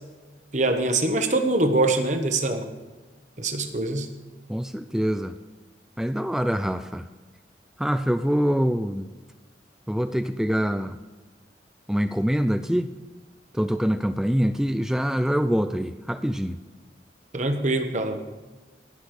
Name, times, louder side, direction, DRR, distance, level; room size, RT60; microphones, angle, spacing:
voice 1, 0.5-2.7 3.4-4.1 17.3-18.2, right 2 dB, 40° right, 7 dB, 1.2 m, -23 dB
voice 2, 4.5-5.3 6.0-7.0 7.8-9.1 9.9-11.0 11.9-12.9 13.5-16.6, equal, 5° right, 10 dB, 0.3 m, -24 dB
18.0 x 6.2 x 4.9 m, 1.3 s
head